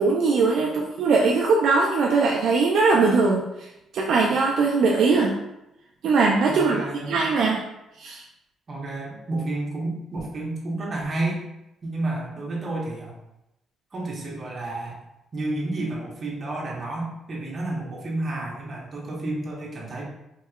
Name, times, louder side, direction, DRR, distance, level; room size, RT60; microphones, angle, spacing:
voice 1, 0.0-3.4 3.9-5.4 6.0-7.6 8.0-8.2, right 4 dB, 70° right, -1 dB, 0.4 m, -20 dB
voice 2, 6.5-7.1 8.7-11.4 11.8-13.2 13.9-15.0 15.3-20.0, right 2 dB, 40° right, -3 dB, 1.0 m, -30 dB
3.7 x 2.8 x 2.4 m, 0.88 s
cardioid pair, 90°, 0 cm